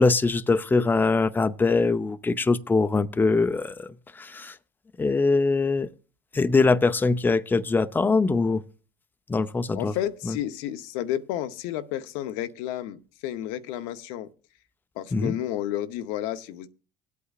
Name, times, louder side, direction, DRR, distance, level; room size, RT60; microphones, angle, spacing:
voice 1, 0.0-4.6 5.0-5.9 6.3-8.6 9.3-9.9 10.3-10.4 15.1-15.3, left 3 dB, 15° left, 0.6 m, -22 dB
voice 2, 9.7-14.3 15.0-16.7, left 12 dB, 80° left, 0.8 m, -31 dB
25.0 x 8.3 x 2.4 m
supercardioid pair, 90°, 12 cm